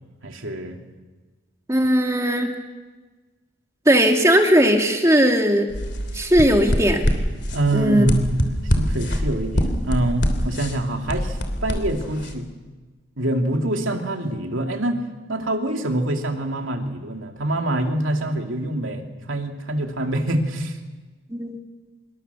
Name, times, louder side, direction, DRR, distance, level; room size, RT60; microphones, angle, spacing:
voice 1, 0.2-0.8 7.5-12.4 13.2-15.0 15.3-20.8, right 1 dB, 75° right, 3 dB, 2.7 m, -25 dB
voice 2, 1.7-2.5 3.9-5.7 6.1-7.1 7.7-8.1 21.3-21.6, equal, 15° right, 3 dB, 2.3 m, -18 dB
sound 1, 5.7-12.3, equal, 55° left, 3.2 m, -25 dB
26.5 x 23.5 x 7.1 m, 1.3 s
head